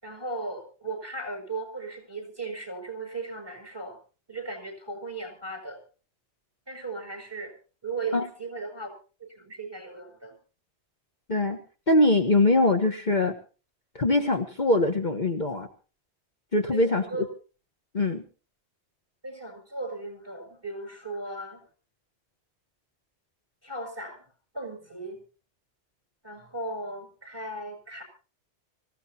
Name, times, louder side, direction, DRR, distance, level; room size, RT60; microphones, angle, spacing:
voice 1, 0.0-4.0 4.3-5.8 6.7-7.5 7.8-8.9 9.2-10.4 16.7-17.2 19.2-21.6 23.6-24.2 24.5-25.2 26.2-28.0, right 2 dB, 20° right, 6 dB, 6.8 m, -37 dB
voice 2, 11.9-13.3 13.9-15.7 16.5-17.0 17.9-18.2, left 2 dB, 40° left, 4 dB, 1.6 m, -22 dB
25.0 x 16.0 x 2.9 m, 0.37 s
omnidirectional pair, 1.2 m